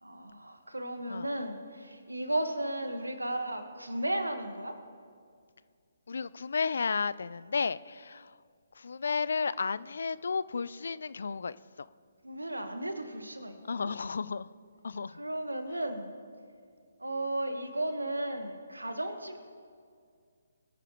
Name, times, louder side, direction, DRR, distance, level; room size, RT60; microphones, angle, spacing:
voice 1, 0.0-4.7 12.2-13.9 15.1-16.1 17.0-19.4, right 1 dB, 90° right, 7 dB, 1.4 m, -35 dB
voice 2, 6.1-8.3 8.8-11.6 13.6-14.5 14.8-15.2, left 5 dB, 65° left, 18 dB, 0.4 m, -33 dB
22.0 x 9.7 x 3.1 m, 2.2 s
figure-of-eight pair, 140°, 0 cm